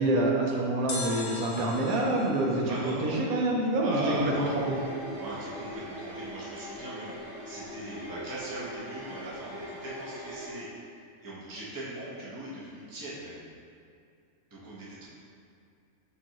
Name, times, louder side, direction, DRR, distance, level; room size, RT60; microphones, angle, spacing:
voice 1, 0.0-2.7 3.0-4.8, right 1 dB, 80° right, -2 dB, 1.1 m, -27 dB
sound 1, 0.9-4.0 4.2-4.3, left 2 dB, 60° left, 0.5 m, -40 dB
voice 2, 2.6-3.2 3.8-4.5 5.2-7.2 7.4-13.4 14.5-15.1, right 1 dB, 20° right, -7 dB, 0.7 m, -39 dB
sound 2, 4.0-10.5, equal, 55° right, 0.9 m, -41 dB
7.2 x 2.5 x 2.9 m, 2.5 s
omnidirectional pair, 1.5 m